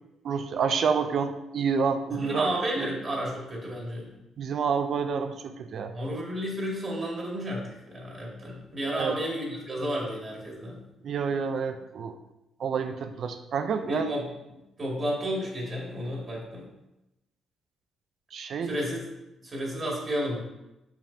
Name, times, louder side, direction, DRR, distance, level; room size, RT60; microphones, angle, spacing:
voice 1, 0.2-3.0 4.4-5.9 9.0-9.2 11.0-12.2 12.6-14.1 18.3-18.7, right 6 dB, 60° right, 8 dB, 0.5 m, -28 dB
voice 2, 2.1-4.1 5.9-10.8 13.8-14.3 14.8-16.7 18.6-19.0 19.4-20.4, equal, 35° right, -3 dB, 2.2 m, -32 dB
6.7 x 6.0 x 2.8 m, 0.95 s
cardioid pair, 90°, 0 cm